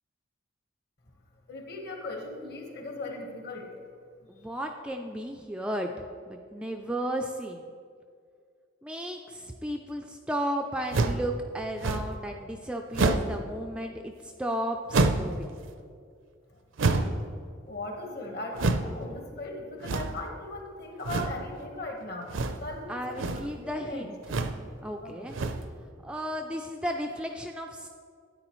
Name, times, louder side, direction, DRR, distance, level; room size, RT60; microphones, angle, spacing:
voice 1, 1.5-3.7 17.7-24.1 25.0-25.1, left 2 dB, 50° left, 2 dB, 1.3 m, -38 dB
voice 2, 4.3-5.9 6.3-7.6 8.8-15.5 22.9-24.2 24.8-25.3 26.0-27.9, equal, 5° right, 2 dB, 0.3 m, -34 dB
sound 1, 10.9-11.3 11.8-12.2 12.9-13.4 14.9-15.4 16.8-17.2 18.5-18.9 19.8-20.3 21.0-21.4 22.3-22.7 23.1-23.5 24.2-24.6 25.3-25.7, right 3 dB, 65° right, 0.5 m, -27 dB
12.5 x 9.5 x 3.1 m, 2.2 s
head